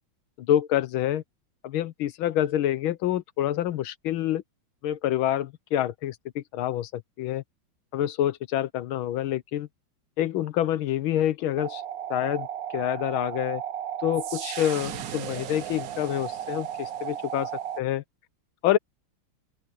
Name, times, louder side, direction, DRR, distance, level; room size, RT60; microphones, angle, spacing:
voice 1, 0.4-1.2 1.6-4.4 4.8-7.4 7.9-9.7 10.2-11.8 12.1-12.5 12.7-13.6 14.0-17.5 17.8-18.0 18.6-18.8, left 12 dB, 75° left, 1.7 m, -27 dB
sound 1, 11.6-17.8, right 10 dB, 60° right, 1.0 m, -34 dB
open air
omnidirectional pair, 2.3 m